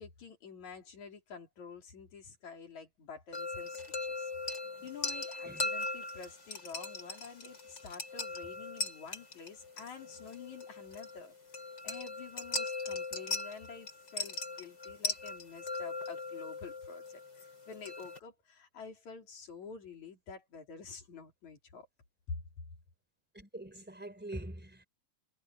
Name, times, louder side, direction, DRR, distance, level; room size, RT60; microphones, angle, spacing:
voice 1, 0.0-4.3 4.8-11.3 11.8-21.9 22.3-22.4, left 5 dB, 50° left, 5.0 m, -48 dB
sound 1, 3.3-18.2, left 3 dB, 25° left, 5.2 m, -40 dB
voice 2, 23.3-24.8, right 1 dB, 5° right, 3.6 m, -44 dB
omnidirectional pair, 4.5 m